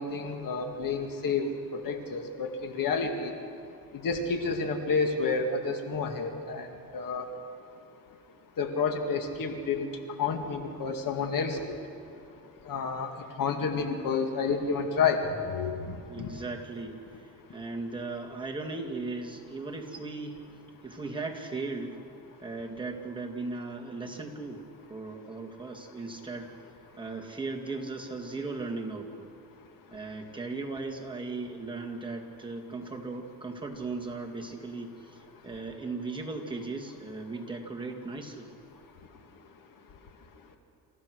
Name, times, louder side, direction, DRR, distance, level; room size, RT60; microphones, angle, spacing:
voice 1, 0.0-1.5 1.7-3.3 4.0-6.7 6.9-7.3 8.6-9.9 10.2-11.8 12.7-13.1 13.4-15.7 16.2-16.3, left 5 dB, 60° left, 5 dB, 2.1 m, -29 dB
voice 2, 16.1-22.0 22.4-26.5 27.0-29.3 29.9-38.5, right 3 dB, 15° right, 0 dB, 2.3 m, -37 dB
28.0 x 15.0 x 6.4 m, 2.5 s
cardioid pair, 105°, 37 cm